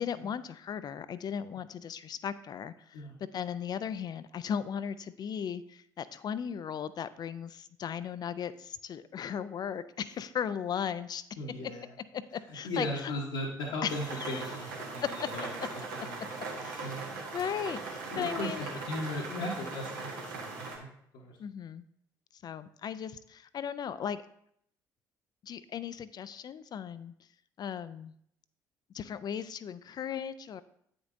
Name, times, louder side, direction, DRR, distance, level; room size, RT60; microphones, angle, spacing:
voice 1, 0.0-11.2 12.1-13.1 13.8-14.4 15.0-15.1 16.6-17.0 17.3-18.7 21.4-21.8 22.3-24.2 25.4-27.1 27.6-28.1 28.9-30.6, left 8 dB, 40° left, 14 dB, 0.3 m, -37 dB
voice 2, 11.4-11.9 12.6-15.5 15.7-16.3 16.8-17.3 18.1-20.9 21.1-21.4, left 1 dB, 65° left, -4 dB, 1.0 m, -37 dB
sound 1, 13.9-20.8, right 3 dB, 75° right, 1.0 m, -39 dB
8.6 x 5.2 x 2.5 m, 0.70 s
figure-of-eight pair, 50°, 10 cm